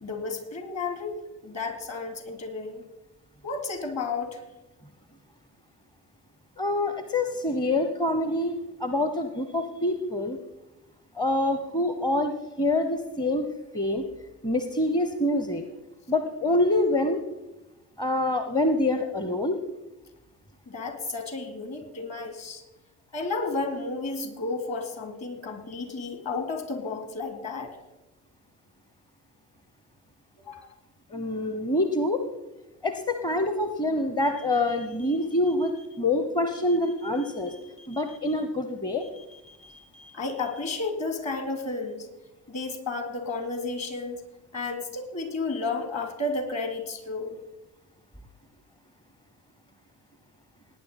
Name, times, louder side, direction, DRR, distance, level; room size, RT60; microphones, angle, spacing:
voice 1, 0.0-2.8 3.4-4.4 20.7-22.6 23.1-27.7 30.4-30.7 40.1-42.1 42.5-44.2 44.5-47.3, left 3 dB, 35° left, 6 dB, 2.9 m, -32 dB
voice 2, 6.6-8.5 8.8-10.4 11.1-13.5 13.7-14.0 14.4-15.6 16.1-17.2 18.0-19.6 31.1-32.2 32.8-37.5 37.9-39.0, left 1 dB, 10° left, 7 dB, 0.9 m, -26 dB
sound 1, 34.2-35.9 36.5-38.3 39.0-40.8, left 2 dB, 50° left, 3.6 m, -52 dB
18.5 x 9.7 x 4.2 m, 1.0 s
figure-of-eight pair, 60°, 47 cm